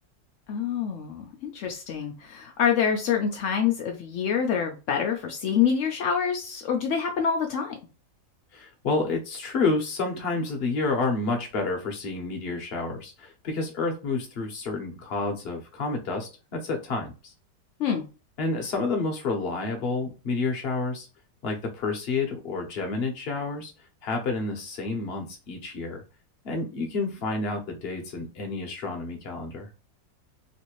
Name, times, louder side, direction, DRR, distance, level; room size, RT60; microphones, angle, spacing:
voice 1, 0.5-7.8 17.8-18.0, left 7 dB, 80° left, 0.7 m, -26 dB
voice 2, 8.5-17.3 18.4-21.1 21.4-23.7 24.0-26.0 26.4-29.7, left 3 dB, 45° left, 0.8 m, -29 dB
3.2 x 2.6 x 3.0 m
omnidirectional pair, 1.9 m